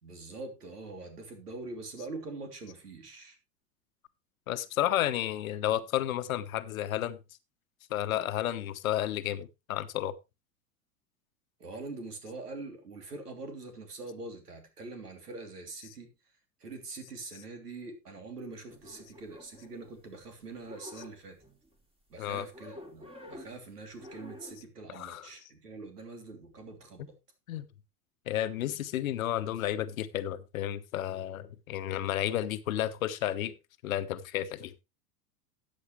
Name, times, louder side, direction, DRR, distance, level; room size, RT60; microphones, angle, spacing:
voice 1, 0.0-3.4 11.6-16.1 16.6-21.4 22.1-27.2, right 3 dB, 75° right, 3.2 m, -44 dB
voice 2, 4.5-7.2 7.9-10.1 22.2-22.5 24.9-25.3 27.5-27.7 28.3-33.5 33.8-34.7, left 12 dB, 60° left, 1.1 m, -32 dB
sound 1, 18.7-20.2 20.5-21.8 22.5-23.6 24.0-24.6, left 1 dB, 10° right, 3.0 m, -49 dB
14.0 x 8.7 x 3.2 m
figure-of-eight pair, 90°, 46 cm